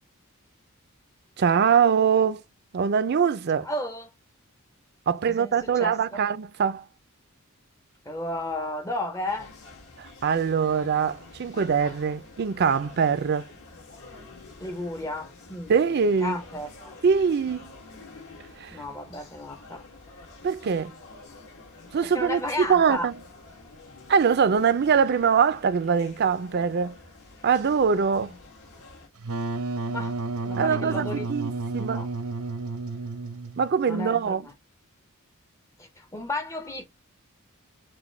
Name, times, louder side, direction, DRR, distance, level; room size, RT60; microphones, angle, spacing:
voice 1, 1.4-2.4 2.7-3.7 5.1-6.8 10.0-13.5 15.7-16.4 17.0-17.7 18.6-18.8 20.4-20.9 21.9-23.2 24.1-27.0 27.4-28.3 30.6-32.1 33.6-34.4, right 6 dB, 50° right, 0.4 m, -23 dB
voice 2, 3.6-4.1 5.3-5.5 5.8-6.2 8.1-9.5 14.6-15.7 16.2-16.9 18.7-19.8 22.0-23.1 29.9-30.2 30.4-31.3 31.9-32.1 33.8-34.4 35.8-36.9, left 1 dB, 15° left, 0.5 m, -33 dB
sound 1, 9.3-29.1, left 3 dB, 75° left, 1.7 m, -48 dB
Wind instrument woodwind instrument, 29.2-33.7, right 3 dB, 80° right, 0.8 m, -31 dB
6.1 x 2.2 x 3.2 m
head